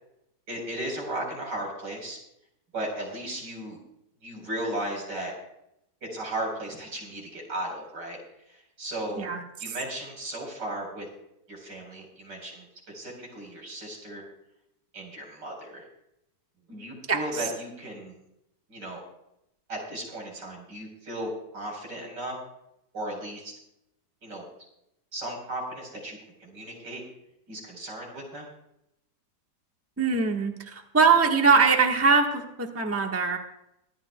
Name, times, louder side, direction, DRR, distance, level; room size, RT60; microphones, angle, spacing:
voice 1, 0.5-2.2 2.7-3.8 4.2-5.3 6.1-8.2 8.5-9.3 9.6-11.1 11.5-12.7 12.9-14.2 14.9-15.9 16.7-18.2 18.7-19.0 19.7-22.3 22.9-23.5 24.2-24.5 25.1-27.0 27.5-28.5, right 1 dB, 75° right, 0 dB, 4.9 m, -35 dB
voice 2, 17.1-17.4 30.0-33.4, right 5 dB, 10° right, 2 dB, 1.1 m, -22 dB
24.0 x 12.0 x 2.3 m, 0.81 s
omnidirectional pair, 1.9 m